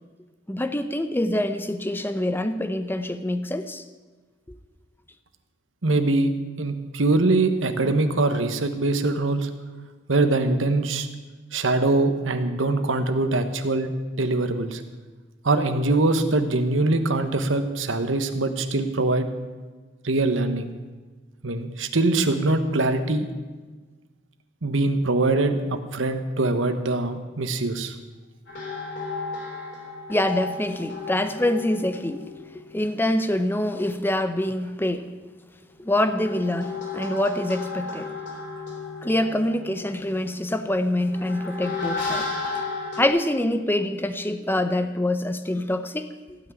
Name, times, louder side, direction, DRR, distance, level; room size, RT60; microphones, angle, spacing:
voice 1, 0.5-3.8 30.1-32.3 32.7-35.1 35.8-38.1 39.0-42.3 42.6-42.7 43.0-46.4, left 1 dB, 10° left, 9 dB, 0.7 m, -25 dB
voice 2, 5.8-6.3 6.6-9.5 10.1-11.1 11.5-14.8 15.4-19.3 20.0-20.7 21.4-23.3 24.6-27.9, right 2 dB, 75° right, 8 dB, 1.2 m, -23 dB
sound 1, 28.5-33.5 35.7-43.1, left 4 dB, 60° left, 3.4 m, -34 dB
16.0 x 6.1 x 9.2 m, 1.3 s
head